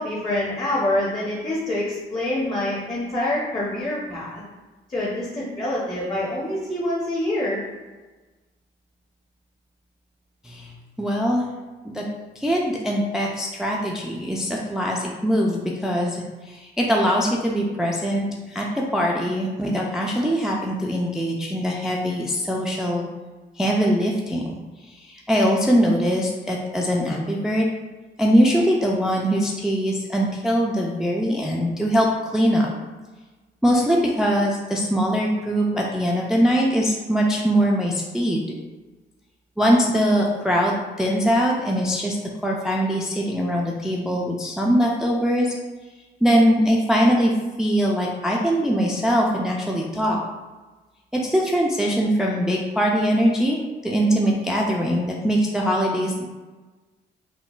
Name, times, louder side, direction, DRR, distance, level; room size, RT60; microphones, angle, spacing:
voice 1, 0.0-4.4 4.9-7.6, left 1 dB, 25° left, -7 dB, 0.8 m, -26 dB
voice 2, 11.0-11.5 11.8-12.0 12.4-16.2 16.4-23.1 23.6-24.6 24.8-27.7 28.2-32.1 32.3-32.7 33.6-38.4 39.6-42.2 42.4-45.5 46.2-47.3 47.6-50.2 51.1-56.3, equal, 5° right, -2 dB, 0.3 m, -22 dB
3.7 x 2.1 x 2.4 m, 1.2 s
cardioid pair, 90°, 20 cm